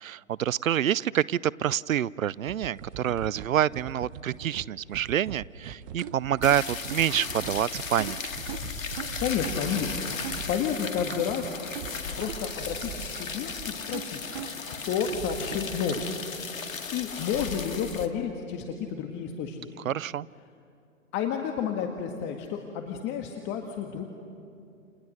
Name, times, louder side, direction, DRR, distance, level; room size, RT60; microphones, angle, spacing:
voice 1, 0.0-8.2 19.8-20.3, right 10 dB, 75° right, 23 dB, 0.6 m, -27 dB
sound 1, 2.4-16.1, right 9 dB, 40° right, 1.2 m, -41 dB
sound 2, 6.4-18.1, left 5 dB, 75° left, 2.2 m, -36 dB
voice 2, 9.2-10.0 10.5-11.6 12.2-14.2 14.9-16.1 16.9-19.7 21.1-24.1, left 7 dB, 25° left, 3 dB, 1.8 m, -31 dB
29.5 x 29.5 x 6.5 m, 2.5 s
figure-of-eight pair, 120°, 40 cm